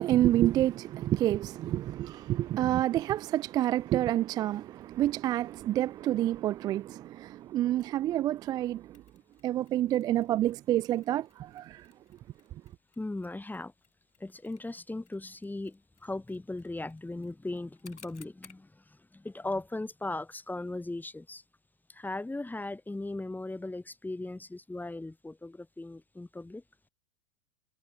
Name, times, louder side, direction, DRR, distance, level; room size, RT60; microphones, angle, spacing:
voice 1, 0.0-9.0 9.4-11.9, right 13 dB, 10° right, 0.4 m, -28 dB
Mechanisms, 8.9-18.7, left 6 dB, 70° left, 7.9 m, -62 dB
voice 2, 13.0-13.7 14.2-21.4 21.9-26.6, left 2 dB, 5° left, 4.2 m, -38 dB
figure-of-eight pair, 100°, 36 cm